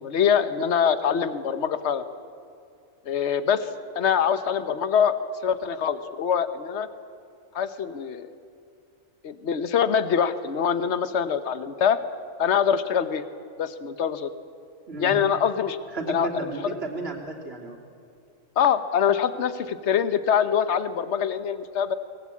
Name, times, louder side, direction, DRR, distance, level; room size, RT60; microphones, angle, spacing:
voice 1, 0.0-2.0 3.0-3.7 3.9-5.1 5.4-6.9 7.5-8.3 9.2-12.0 12.4-13.2 13.6-14.3 15.0-15.8 16.1-16.7 18.6-21.9, left 8 dB, 60° left, 12 dB, 1.3 m, -24 dB
voice 2, 15.9-17.8, right 3 dB, 50° right, 1 dB, 3.3 m, -33 dB
23.5 x 20.0 x 8.5 m, 2.5 s
omnidirectional pair, 1.3 m